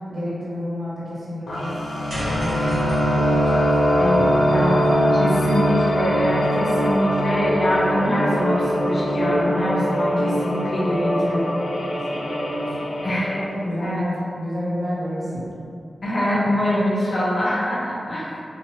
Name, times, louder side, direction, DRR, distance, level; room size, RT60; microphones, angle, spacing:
voice 1, 0.1-5.3 11.9-12.9 13.3-15.5, equal, 35° right, -9 dB, 0.8 m, -31 dB
sound 1, 1.5-13.4, equal, 85° left, 0.4 m, -22 dB
sound 2, 2.1-6.5, equal, 65° right, 0.8 m, -36 dB
voice 2, 4.0-4.8 5.1-11.4 13.0-13.3 13.8-14.0 16.0-18.3, equal, 50° left, -8 dB, 0.7 m, -24 dB
2.6 x 2.1 x 2.8 m, 2.4 s
wide cardioid pair, 130°, 0 cm